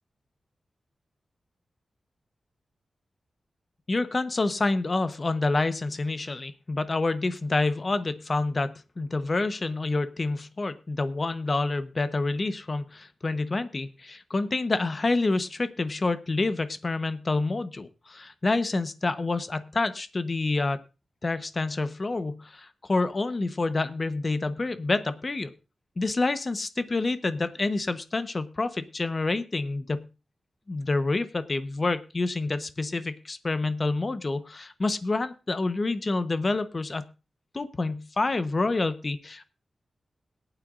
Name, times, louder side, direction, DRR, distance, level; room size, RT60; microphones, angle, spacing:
voice 1, 3.9-20.8 21.2-25.5 26.0-30.0 30.7-37.0 37.5-39.4, left 3 dB, 35° left, 11 dB, 0.9 m, -28 dB
21.5 x 9.1 x 2.5 m, 0.31 s
wide cardioid pair, 125°, 0 cm